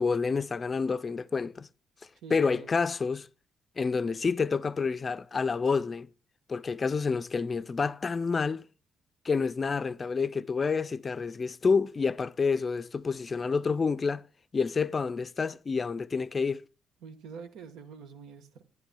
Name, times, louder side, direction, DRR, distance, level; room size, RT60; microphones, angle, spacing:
voice 1, 0.0-1.7 2.3-3.3 3.8-6.1 6.5-8.6 9.2-14.2 14.5-16.6, left 5 dB, 35° left, 0.4 m, -28 dB
voice 2, 2.1-2.7 17.0-18.6, right 5 dB, 90° right, 1.2 m, -46 dB
14.0 x 10.5 x 2.2 m
cardioid pair, 90°, 0 cm